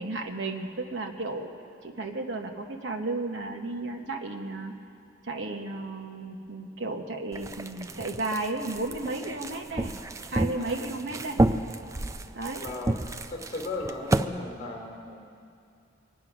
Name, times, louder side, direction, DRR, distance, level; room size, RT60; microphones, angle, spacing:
voice 1, 0.0-1.5 1.8-4.8 5.2-9.9 10.3-11.4 12.3-12.6, right 2 dB, 75° right, 2 dB, 1.1 m, -33 dB
sound 1, 7.3-14.2, right 2 dB, 15° right, 0.4 m, -30 dB
voice 2, 10.5-11.2 12.6-13.0 13.3-15.2, left 2 dB, 35° left, 0 dB, 2.7 m, -37 dB
23.0 x 9.4 x 6.1 m, 2.6 s
head